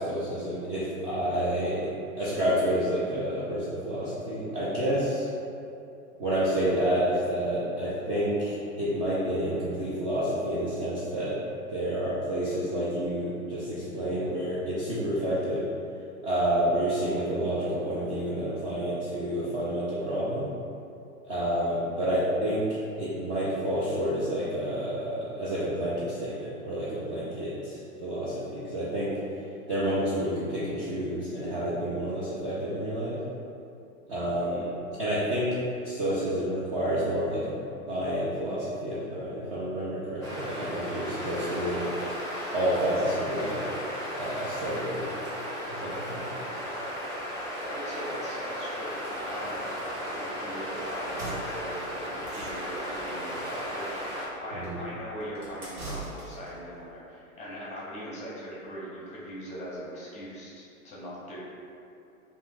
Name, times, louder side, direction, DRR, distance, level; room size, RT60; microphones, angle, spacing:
voice 1, 0.0-1.9 2.2-5.3 6.2-11.4 11.7-15.6 16.2-20.5 21.3-29.1 29.7-33.2 34.1-34.7 35.0-35.6 35.8-37.6 37.9-41.9 42.5-43.6 44.1-45.1 45.7-46.2 54.5-54.8, equal, 25° right, -10 dB, 0.3 m, -29 dB
sound 1, 40.2-54.3, equal, 10° right, 0.8 m, -35 dB
voice 2, 47.6-61.4, equal, 15° left, -7 dB, 0.6 m, -40 dB
sound 2, 51.0-56.6, right 2 dB, 80° right, 1.1 m, -42 dB
2.5 x 2.4 x 3.6 m, 2.6 s
hypercardioid pair, 105°, 43 cm